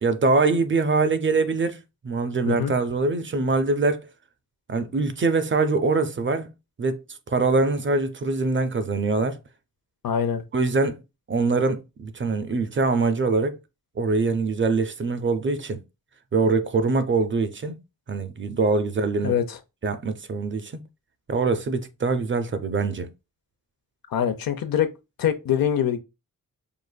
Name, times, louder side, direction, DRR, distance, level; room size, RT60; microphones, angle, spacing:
voice 1, 0.0-4.1 4.7-6.5 6.8-7.0 7.3-9.4 10.5-11.0 11.3-13.6 14.0-15.8 16.3-17.8 18.1-19.3 19.8-20.8 21.3-23.1, right 3 dB, 35° right, 0.4 m, -23 dB
voice 2, 10.0-10.4 19.2-19.6 24.1-24.9 25.2-26.0, left 9 dB, 80° left, 0.6 m, -24 dB
4.9 x 2.5 x 2.2 m
wide cardioid pair, 140°, 34 cm